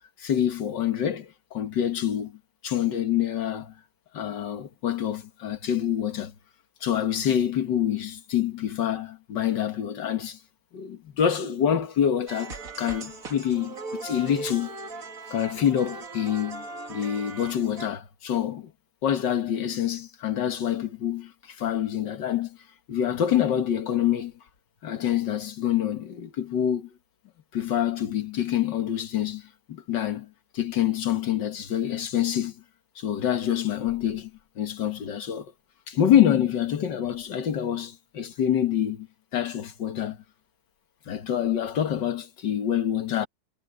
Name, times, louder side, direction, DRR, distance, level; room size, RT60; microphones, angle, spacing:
voice 1, 0.2-2.4 2.6-3.7 4.1-6.3 6.8-10.4 10.7-14.8 15.3-18.7 19.0-22.6 22.9-24.3 24.8-26.9 27.5-30.3 30.5-32.6 33.0-34.3 34.6-35.5 35.9-39.1 39.3-40.2 41.1-43.3, left 10 dB, 85° left, 2.1 m, -26 dB
sound 1, 12.3-17.9, right 3 dB, 50° right, 2.4 m, -39 dB
omnidirectional pair, 1.9 m